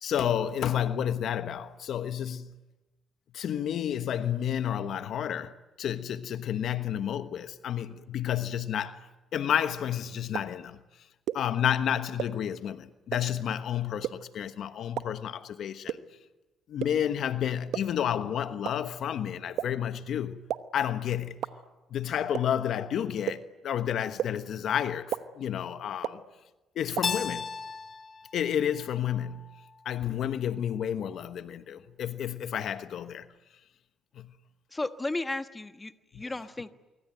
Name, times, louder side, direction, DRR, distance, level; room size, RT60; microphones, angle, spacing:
voice 1, 0.0-2.6 3.3-10.8 11.3-16.0 16.7-20.5 20.7-21.4 21.9-26.2 26.7-27.5 28.3-29.5 29.8-33.3 34.1-34.3 36.1-36.2, left 9 dB, 70° left, 1.2 m, -31 dB
sound 1, 10.3-10.4 11.3-11.4 12.2-12.3 13.1-13.2 14.0-14.1 15.0-15.1 15.9-16.0 16.8-16.9 17.7-17.8 18.6-18.7 19.6-19.7 20.5-20.6 21.4-21.5 22.3-22.4 23.3-23.4 24.2-24.3 25.1-25.2 26.0-26.1 27.0-27.1, right 11 dB, 85° right, 1.0 m, -29 dB
Keyboard (musical), 27.0-29.8, left 6 dB, 45° left, 0.9 m, -36 dB
voice 2, 34.7-36.7, left 2 dB, 20° left, 1.4 m, -34 dB
24.5 x 24.0 x 9.2 m
cardioid pair, 90°, 0 cm